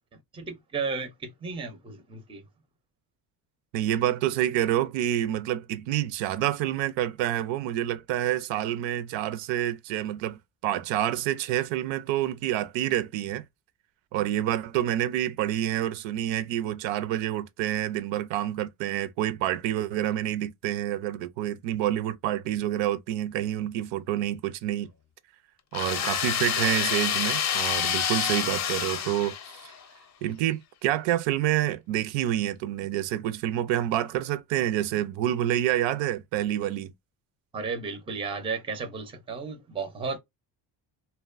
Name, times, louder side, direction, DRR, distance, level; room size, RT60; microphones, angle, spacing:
voice 1, 0.3-2.4 37.5-40.2, right 5 dB, 15° right, 0.4 m, -34 dB
voice 2, 3.7-13.4 14.1-24.9 25.7-29.3 29.6-29.7 30.2-36.9, right 12 dB, 85° right, 0.5 m, -28 dB
sound 1, 25.7-29.8, left 8 dB, 40° left, 0.5 m, -28 dB
2.7 x 2.2 x 2.3 m
cardioid pair, 140°, 43 cm